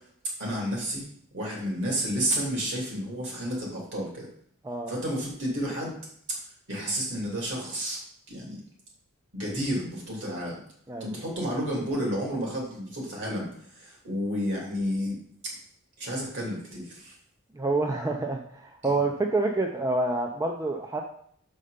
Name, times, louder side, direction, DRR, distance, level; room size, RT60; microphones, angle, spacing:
voice 1, 0.4-1.1 1.3-4.3 4.9-6.0 6.3-6.4 6.7-8.0 8.3-8.6 9.3-10.6 11.0-15.2 15.4-15.5 16.0-17.1, equal, 55° right, -2 dB, 3.1 m, -31 dB
voice 2, 17.5-21.0, right 2 dB, 15° right, 2 dB, 0.5 m, -27 dB
6.7 x 5.4 x 5.0 m, 0.64 s
head